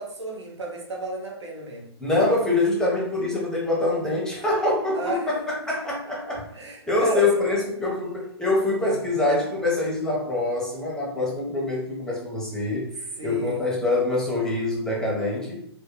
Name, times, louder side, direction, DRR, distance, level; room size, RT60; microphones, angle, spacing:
voice 1, 0.0-1.9 4.9-5.3 6.5-7.4 8.8-8.9 13.2-13.6, right 2 dB, 85° right, -1 dB, 0.7 m, -32 dB
voice 2, 2.0-6.5 6.9-15.6, left 2 dB, 5° left, -3 dB, 0.6 m, -25 dB
2.2 x 2.1 x 3.0 m, 0.73 s
hypercardioid pair, 125°, 14 cm